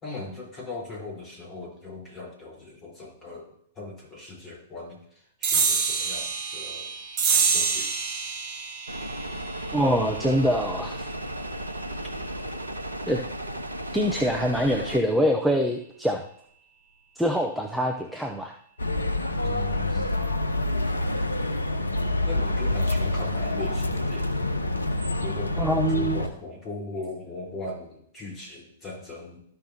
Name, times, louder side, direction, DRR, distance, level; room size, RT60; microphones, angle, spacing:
voice 1, 0.0-3.4 3.8-6.9 7.4-7.9 11.9-12.1 19.4-20.2 22.2-24.3 25.2-29.4, left 2 dB, 20° left, -4 dB, 4.0 m, -39 dB
sound 1, 5.4-12.3, right 5 dB, 35° right, 1.3 m, -28 dB
sound 2, 8.9-15.0, right 1 dB, 90° right, 0.8 m, -34 dB
voice 2, 9.7-11.1 13.1-13.2 13.9-16.2 17.2-18.5 19.9-20.0 25.6-26.2, equal, ahead, 2 dB, 0.7 m, -24 dB
sound 3, 18.8-26.3, left 1 dB, 85° left, 0.8 m, -27 dB
13.0 x 5.8 x 2.8 m, 0.67 s
figure-of-eight pair, 105°, 0 cm